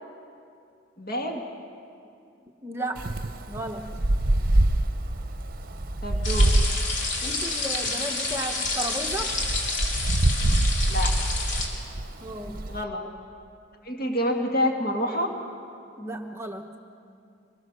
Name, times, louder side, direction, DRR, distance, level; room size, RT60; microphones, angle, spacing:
voice 1, 1.0-1.4 6.0-6.5 10.9-11.1 12.7-13.0 13.8-15.3, left 1 dB, 50° left, 1 dB, 2.0 m, -27 dB
voice 2, 2.6-3.0 3.5-3.9 7.2-9.3 12.2-12.7 16.0-16.7, right 1 dB, 15° right, 3 dB, 0.8 m, -34 dB
Wind, 3.0-12.8, right 1 dB, 45° right, 0.8 m, -25 dB
sound 1, 6.2-11.7, left 3 dB, 70° left, 3.3 m, -29 dB
25.0 x 20.0 x 6.7 m, 2.5 s
head